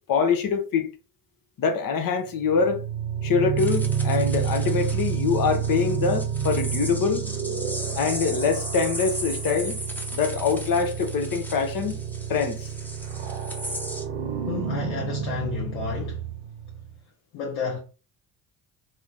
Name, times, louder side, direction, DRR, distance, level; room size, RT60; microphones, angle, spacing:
voice 1, 0.1-0.9 1.6-2.8 3.2-7.3 7.9-9.8 10.1-12.0 12.3-12.7, left 5 dB, 50° left, 0.8 m, -24 dB
sound 1, 2.3-16.9, right 7 dB, 85° right, 0.8 m, -30 dB
sound 2, 3.6-14.0, equal, 5° left, 0.7 m, -37 dB
voice 2, 14.4-16.2 17.3-17.8, left 5 dB, 75° left, 0.9 m, -31 dB
2.7 x 2.1 x 3.6 m
hypercardioid pair, 55°, 45 cm